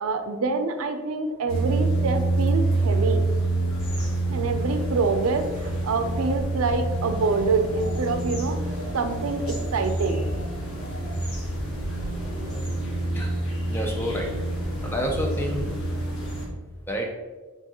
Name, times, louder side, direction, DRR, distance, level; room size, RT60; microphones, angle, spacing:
voice 1, 0.0-3.2 4.3-8.6 8.9-10.3, right 4 dB, 85° right, 7 dB, 0.5 m, -26 dB
sound 1, 1.5-16.5, right 2 dB, 75° left, 1.4 m, -27 dB
voice 2, 13.7-14.3 14.8-15.7 16.9-17.1, equal, 10° left, 1 dB, 0.5 m, -28 dB
4.6 x 3.8 x 2.9 m, 1.3 s
head